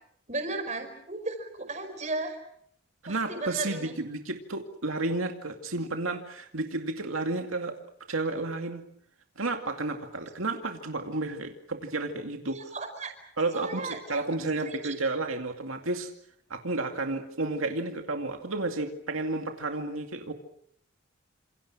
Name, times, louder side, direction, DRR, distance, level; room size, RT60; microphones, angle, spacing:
voice 1, 0.3-2.4 3.1-4.0 12.5-13.1 13.5-14.2 14.6-14.9, right 2 dB, 35° right, 7 dB, 5.3 m, -35 dB
voice 2, 3.0-7.7 8.1-8.8 9.4-12.6 13.4-16.1 16.5-20.3, right 2 dB, 90° right, 4 dB, 2.3 m, -32 dB
28.0 x 27.5 x 6.2 m, 0.69 s
head